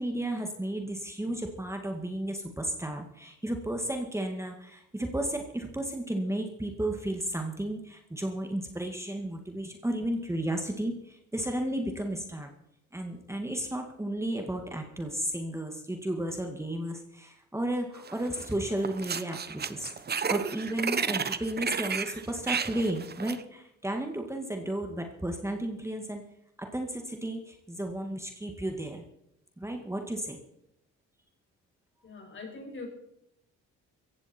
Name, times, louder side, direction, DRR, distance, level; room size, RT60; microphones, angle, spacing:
voice 1, 0.0-12.5 12.9-19.9 20.3-26.2 26.6-29.0 29.6-30.4, right 1 dB, 10° right, 3 dB, 2.1 m, -33 dB
sound 1, 18.1-18.5 18.8-23.4, right 6 dB, 35° right, 1.1 m, -32 dB
voice 2, 32.0-32.9, left 3 dB, 40° left, 3 dB, 5.8 m, -42 dB
17.0 x 15.5 x 4.5 m, 0.81 s
cardioid pair, 90°, 30 cm